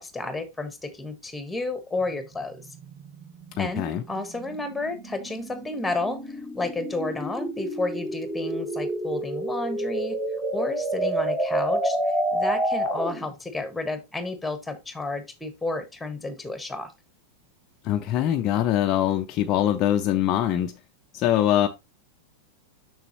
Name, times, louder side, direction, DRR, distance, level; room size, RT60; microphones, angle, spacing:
voice 1, 0.0-2.6 3.6-10.2 10.5-12.0 12.3-16.9, left 2 dB, 5° left, 1.3 m, -31 dB
sound 1, 2.1-13.3, right 1 dB, 15° right, 1.4 m, -29 dB
voice 2, 3.6-4.0 17.8-20.7 21.1-21.7, left 11 dB, 35° left, 0.5 m, -23 dB
6.7 x 6.2 x 2.9 m
figure-of-eight pair, 90°, 0 cm